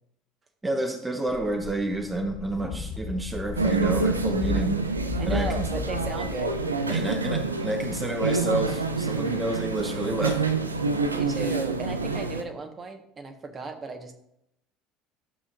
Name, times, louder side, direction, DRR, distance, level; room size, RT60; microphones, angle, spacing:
voice 1, 0.6-4.8 5.3-5.6 6.9-7.4 7.6-10.5, right 1 dB, 15° right, 2 dB, 1.2 m, -29 dB
sound 1, 1.3-6.7, left 5 dB, 55° left, 2.3 m, -35 dB
sound 2, 3.6-12.4, right 3 dB, 90° right, 0.6 m, -27 dB
voice 2, 5.2-6.5 6.9-7.4 11.1-14.1, right 3 dB, 30° right, 5 dB, 1.4 m, -35 dB
12.5 x 7.0 x 2.6 m, 0.78 s
figure-of-eight pair, 65°, 0 cm